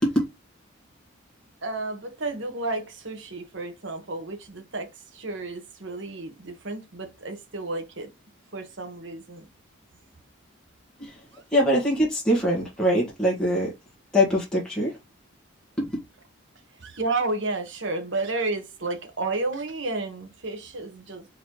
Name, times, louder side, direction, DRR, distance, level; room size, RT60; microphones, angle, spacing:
voice 1, 1.6-4.9 5.1-8.1 8.5-9.4 16.8-21.3, right 2 dB, 65° right, 1.2 m, -31 dB
voice 2, 11.5-13.7 14.1-14.9 15.8-15.9, equal, 5° left, 1.6 m, -23 dB
4.0 x 3.9 x 3.1 m
head